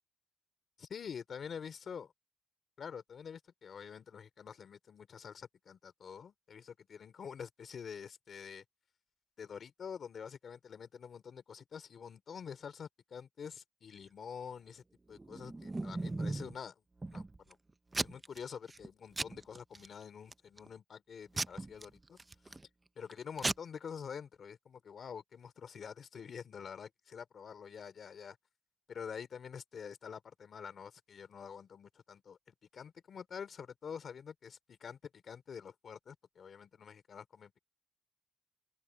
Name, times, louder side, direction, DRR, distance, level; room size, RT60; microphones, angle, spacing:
voice 1, 0.8-2.1 2.8-8.6 9.4-16.8 17.1-17.6 18.0-22.2 22.9-28.4 28.9-37.6, left 7 dB, 50° left, 3.3 m, -47 dB
Packing tape duct tape / Tearing, 15.2-16.5 17.0-17.5 17.9-18.4 18.7-18.9 19.2-19.9 20.3-20.7 21.4-22.6 23.1-23.2 23.4-23.5, right 2 dB, 20° right, 0.6 m, -37 dB
open air
cardioid pair, 135°, 0 cm